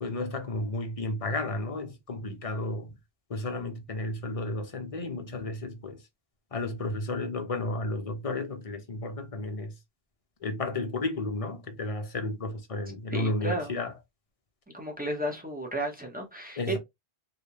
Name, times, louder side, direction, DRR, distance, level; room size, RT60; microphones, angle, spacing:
voice 1, 0.0-2.9 3.3-6.0 6.5-9.7 10.4-13.9 16.6-16.8, left 2 dB, 35° left, 0.8 m, -32 dB
voice 2, 13.1-13.7 14.7-16.8, right 1 dB, 10° right, 1.0 m, -33 dB
3.4 x 2.8 x 2.8 m
omnidirectional pair, 1.1 m